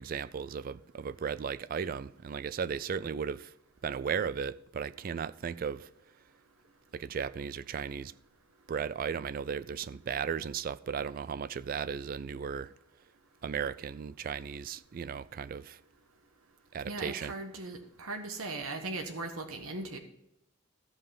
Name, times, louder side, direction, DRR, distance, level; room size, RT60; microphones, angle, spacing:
voice 1, 0.0-3.5 3.8-5.9 6.9-8.1 8.7-12.7 13.4-15.8 16.7-17.3, right 6 dB, 40° right, 0.3 m, -36 dB
voice 2, 16.9-20.0, right 3 dB, 80° right, 1.2 m, -38 dB
14.0 x 5.4 x 5.6 m
head